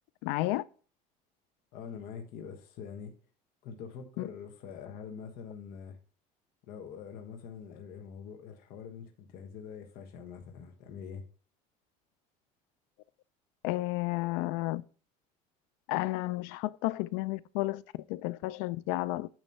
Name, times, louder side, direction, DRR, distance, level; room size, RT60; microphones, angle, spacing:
voice 1, 0.2-0.6 4.2-4.3 13.6-14.8 15.9-17.8 18.1-19.3, left 18 dB, 85° left, 0.4 m, -32 dB
voice 2, 1.7-3.1 3.6-6.0 6.6-11.2, left 6 dB, 60° left, 1.3 m, -44 dB
8.9 x 3.1 x 5.4 m
cardioid pair, 140°, 17 cm